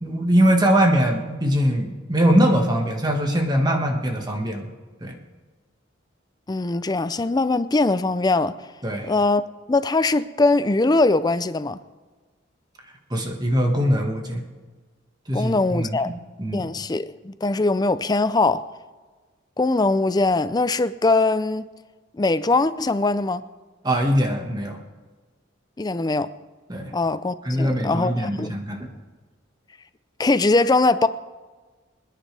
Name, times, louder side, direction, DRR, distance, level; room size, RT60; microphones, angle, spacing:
voice 1, 0.0-4.7 5.0-5.1 8.8-9.1 13.1-14.4 15.3-16.1 16.4-16.7 23.8-24.8 26.7-26.9 27.4-28.9, equal, 20° right, 1.6 m, -22 dB
voice 2, 6.5-8.6 9.1-9.4 9.7-11.8 15.3-16.1 16.5-18.7 19.6-21.7 22.1-23.4 25.8-26.3 26.9-28.5 30.2-31.1, left 3 dB, 20° left, 0.4 m, -21 dB
27.0 x 10.0 x 3.4 m
head